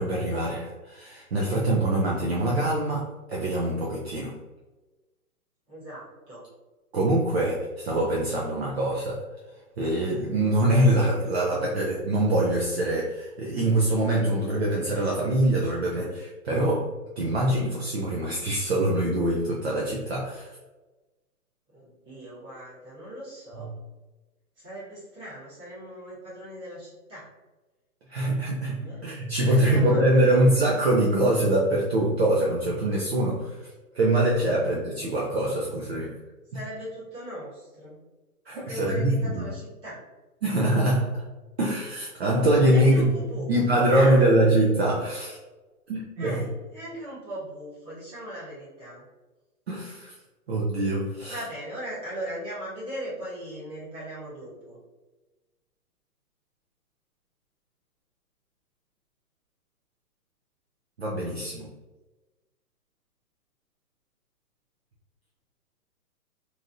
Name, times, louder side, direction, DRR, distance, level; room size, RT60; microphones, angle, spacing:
voice 1, 0.0-4.3 6.9-9.2 9.8-16.9 17.2-20.5 28.1-33.6 33.9-36.2 38.5-39.5 40.4-41.3 41.6-43.1 43.5-45.4 45.9-46.3 49.7-50.1 50.5-51.4 61.0-61.7, right 1 dB, 45° right, -4 dB, 0.5 m, -24 dB
voice 2, 5.7-6.4 21.7-23.7 24.6-27.3 28.8-29.0 29.5-30.6 34.4-34.5 36.5-38.0 38.5-40.0 42.7-44.4 46.2-49.0 51.3-54.8, equal, 10° right, -12 dB, 1.2 m, -39 dB
3.1 x 2.6 x 2.5 m, 1.2 s
hypercardioid pair, 155°, 46 cm